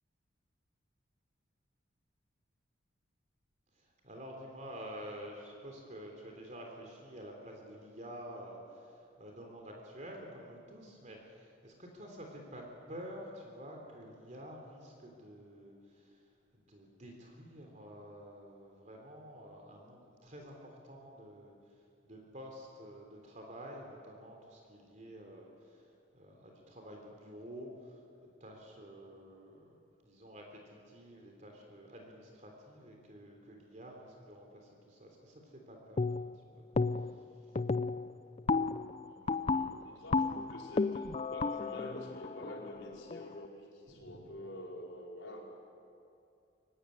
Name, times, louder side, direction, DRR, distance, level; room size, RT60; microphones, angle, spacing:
voice 1, 3.7-16.2 16.5-21.5 22.0-29.7 30.0-36.3 36.5-36.6 36.9-37.2 43.9-44.2, equal, 40° right, 1 dB, 3.4 m, -49 dB
sound 1, 36.0-36.4 36.7-37.2 37.5-43.4, left 4 dB, 35° left, 0.4 m, -33 dB
voice 2, 39.1-45.5, left 1 dB, 85° left, -2 dB, 5.0 m, -48 dB
23.5 x 17.0 x 9.9 m, 2.6 s
head